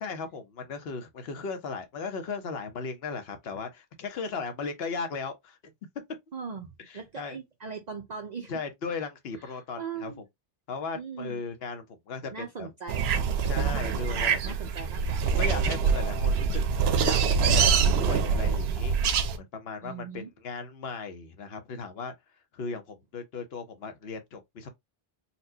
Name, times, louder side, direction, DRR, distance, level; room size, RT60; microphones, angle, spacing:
voice 1, 0.0-5.6 6.8-7.4 8.5-10.1 10.7-12.7 13.4-14.6 15.2-16.6 16.9-17.2 17.5-19.2 19.5-22.1 22.5-24.7, left 4 dB, 75° left, 1.0 m, -37 dB
voice 2, 6.3-8.5 9.4-10.2 10.9-11.4 12.3-13.3 14.0-15.3 19.8-20.3, right 5 dB, 50° right, 0.6 m, -40 dB
sound 1, 12.9-19.4, right 6 dB, 90° right, 0.8 m, -25 dB
4.2 x 2.2 x 2.7 m
omnidirectional pair, 1.0 m